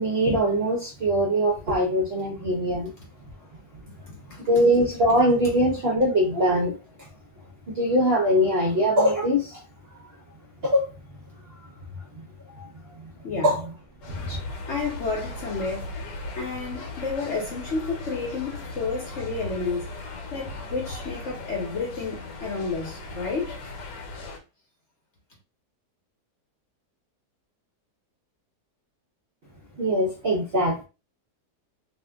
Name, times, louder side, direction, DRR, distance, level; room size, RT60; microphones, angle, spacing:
voice 1, 0.0-2.9 4.5-6.8 7.7-9.6 10.6-10.9 12.6-12.7 13.4-13.6 14.1-14.4 29.8-30.8, equal, 55° right, 0.7 m, -22 dB
voice 2, 3.9-4.4 13.2-13.5 14.7-15.9 16.3-19.9 20.3-23.6, left 4 dB, 50° left, 0.9 m, -31 dB
sound 1, 14.0-24.4, left 2 dB, 75° left, 1.3 m, -37 dB
2.8 x 2.5 x 3.4 m
omnidirectional pair, 1.8 m